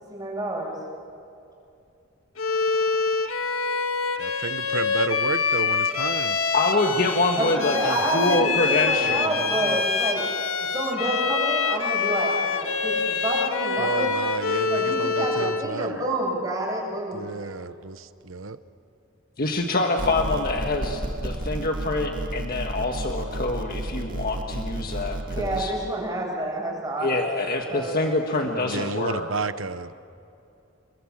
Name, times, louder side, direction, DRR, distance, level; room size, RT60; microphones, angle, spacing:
voice 1, 0.1-0.8 7.4-10.2 10.6-14.2 14.7-17.3 25.2-28.2, right 1 dB, 20° right, -2 dB, 7.4 m, -29 dB
Bowed string instrument, 2.4-15.7, left 5 dB, 85° left, 1.5 m, -25 dB
voice 2, 4.2-6.4 9.0-9.8 13.8-16.0 17.1-18.6 28.6-29.9, right 4 dB, 75° right, 12 dB, 1.0 m, -32 dB
voice 3, 6.5-9.3 19.4-25.7 27.0-29.2, left 2 dB, 45° left, 3 dB, 1.6 m, -25 dB
sound 1, 20.0-25.6, right 1 dB, 45° right, 1.8 m, -31 dB
29.5 x 22.0 x 7.4 m, 2.6 s
head